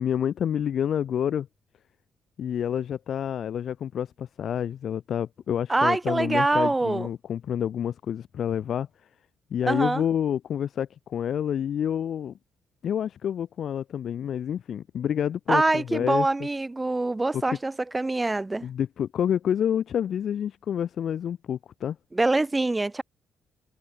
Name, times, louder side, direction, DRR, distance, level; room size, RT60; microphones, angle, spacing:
voice 1, 0.0-1.5 2.4-8.9 9.5-12.3 12.8-16.3 17.3-17.4 18.6-22.0, left 9 dB, 60° left, 1.5 m, -28 dB
voice 2, 5.7-7.1 9.7-10.0 15.5-18.7 22.1-23.0, right 2 dB, 15° right, 0.4 m, -24 dB
cardioid pair, 90°, 0 cm